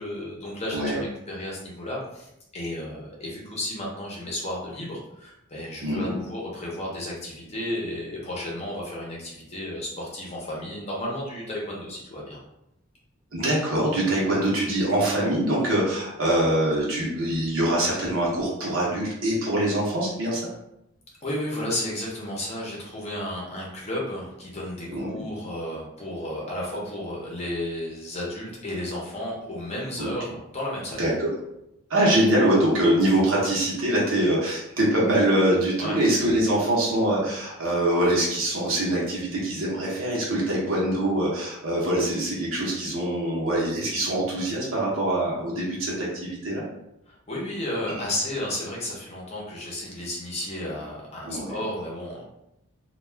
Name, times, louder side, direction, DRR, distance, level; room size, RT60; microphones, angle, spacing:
voice 1, 0.0-12.4 21.2-31.0 35.8-36.0 47.1-52.2, left 1 dB, 30° left, -4 dB, 0.7 m, -33 dB
voice 2, 0.7-1.0 5.8-6.2 13.3-20.4 24.9-25.1 30.0-30.1 31.0-31.3 31.9-46.6 51.3-51.6, right 1 dB, 65° right, -5 dB, 0.8 m, -24 dB
2.3 x 2.3 x 3.2 m, 0.83 s
head